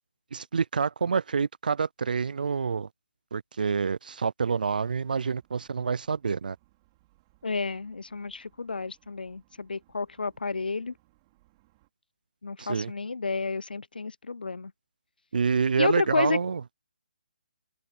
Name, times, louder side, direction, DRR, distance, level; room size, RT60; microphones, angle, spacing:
voice 1, 0.3-2.9 3.3-6.6 12.6-12.9 15.3-16.6, right 5 dB, 70° right, 0.4 m, -27 dB
sound 1, 4.9-11.9, right 20 dB, 25° right, 4.5 m, -66 dB
voice 2, 7.4-10.9 12.4-14.7 15.8-16.4, left 4 dB, 85° left, 0.4 m, -31 dB
open air
figure-of-eight pair, 150°, 5 cm